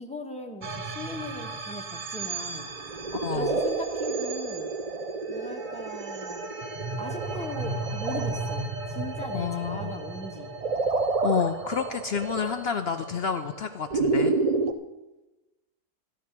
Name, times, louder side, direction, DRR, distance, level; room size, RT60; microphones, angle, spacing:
voice 1, 0.0-2.7 3.3-4.7 5.3-6.5 7.0-10.5, left 1 dB, 5° left, 2 dB, 1.1 m, -39 dB
sound 1, 0.6-13.0, right 3 dB, 40° right, 0.7 m, -37 dB
sound 2, 2.7-14.7, right 3 dB, 75° right, 0.3 m, -30 dB
voice 2, 3.1-3.6 9.3-10.0 11.2-14.3, left 7 dB, 85° left, 8 dB, 0.5 m, -29 dB
14.0 x 10.5 x 5.9 m, 1.1 s
omnidirectional pair, 1.7 m